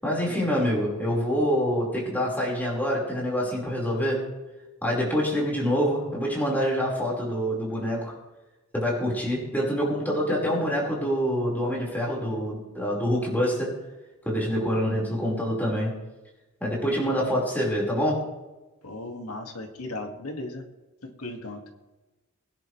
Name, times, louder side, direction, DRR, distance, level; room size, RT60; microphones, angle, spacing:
voice 1, 0.0-4.2 4.8-8.1 8.7-13.7 14.2-15.9 16.6-18.2, equal, 10° left, -4 dB, 5.1 m, -26 dB
voice 2, 18.8-20.6 21.0-21.7, left 2 dB, 85° left, 3 dB, 2.4 m, -36 dB
23.0 x 10.5 x 3.4 m, 1.1 s
head